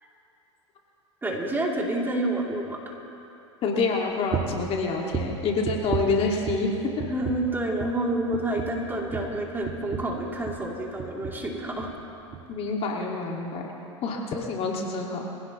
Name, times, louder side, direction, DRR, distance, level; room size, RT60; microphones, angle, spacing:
voice 1, 1.2-2.8 7.0-11.9, right 1 dB, 15° right, -2 dB, 2.9 m, -28 dB
voice 2, 3.6-6.7 12.5-13.6 14.0-15.3, left 3 dB, 40° left, 0 dB, 2.1 m, -27 dB
sound 1, 4.3-4.7 5.1-6.7 7.0-7.5 7.8-8.0 8.3-10.7 11.0-11.5 11.8-12.0 12.3-12.4, right 7 dB, 35° right, 1.7 m, -33 dB
24.0 x 16.5 x 3.1 m, 2.9 s
hypercardioid pair, 100°, 16 cm